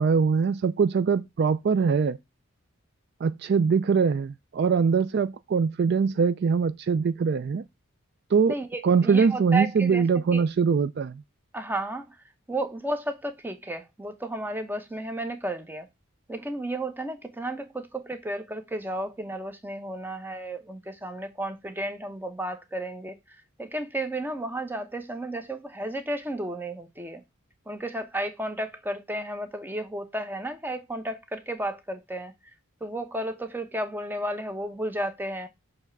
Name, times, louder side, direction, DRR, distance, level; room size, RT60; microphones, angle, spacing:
voice 1, 0.0-2.2 3.2-7.6 8.3-8.5 8.8-11.2, right 5 dB, 50° right, 0.3 m, -22 dB
voice 2, 8.5-10.0 10.3-10.4 11.5-12.1 12.5-15.9 16.3-23.2 23.6-27.2 27.7-32.3 32.8-35.5, right 1 dB, 10° right, 0.8 m, -33 dB
6.9 x 3.3 x 5.8 m
head